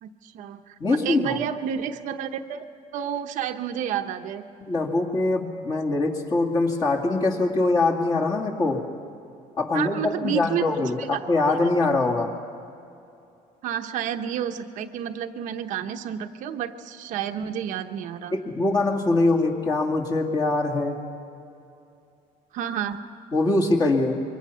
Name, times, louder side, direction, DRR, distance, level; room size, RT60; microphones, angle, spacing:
voice 1, 0.0-2.6 2.9-4.4 9.7-10.7 11.0-11.2 13.6-18.3 22.5-23.0, right 9 dB, 60° right, 6 dB, 1.0 m, -30 dB
voice 2, 0.8-1.4 4.6-8.8 9.6-12.3 18.3-21.0 23.3-24.2, left 2 dB, 30° left, -1 dB, 2.3 m, -23 dB
27.0 x 23.5 x 5.7 m, 2.6 s
cardioid pair, 165°, 15 cm